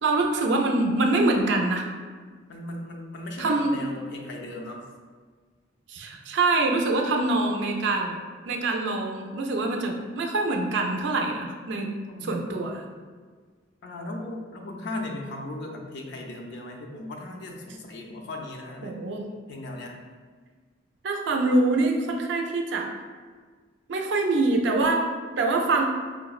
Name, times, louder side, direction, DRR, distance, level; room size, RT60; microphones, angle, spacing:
voice 1, 0.0-1.9 3.4-3.7 5.9-8.2 8.5-11.9 12.2-12.8 18.8-19.3 21.0-22.9 23.9-25.0 25.4-25.8, right 2 dB, 65° right, 2 dB, 0.4 m, -24 dB
voice 2, 2.5-4.8 12.1-12.3 13.8-19.0 19.5-20.0, left 2 dB, 60° left, 1 dB, 0.4 m, -37 dB
4.5 x 2.1 x 2.3 m, 1.5 s
head